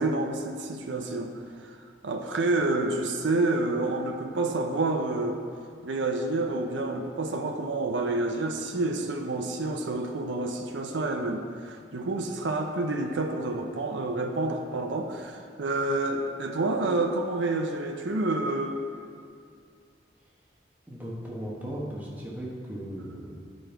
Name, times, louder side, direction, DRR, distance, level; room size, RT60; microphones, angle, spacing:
voice 1, 0.0-1.3 1.7-1.8 2.0-5.4 5.8-18.8, right 2 dB, 85° right, 3 dB, 0.6 m, -28 dB
voice 2, 20.9-23.3, equal, 10° right, -5 dB, 1.1 m, -37 dB
9.5 x 5.2 x 4.5 m, 2.4 s
head